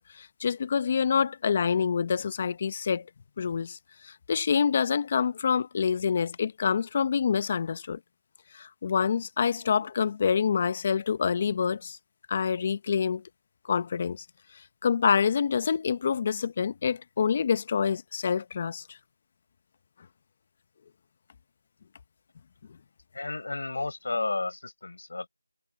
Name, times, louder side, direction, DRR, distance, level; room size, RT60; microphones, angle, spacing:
voice 1, 0.0-3.1 3.4-3.8 4.0-8.0 8.5-12.0 12.3-13.2 13.7-14.2 14.8-19.0, left 6 dB, 15° left, 1.1 m, -26 dB
voice 2, 23.1-25.3, left 3 dB, 35° left, 5.4 m, -32 dB
figure-of-eight pair, 175°, 0 cm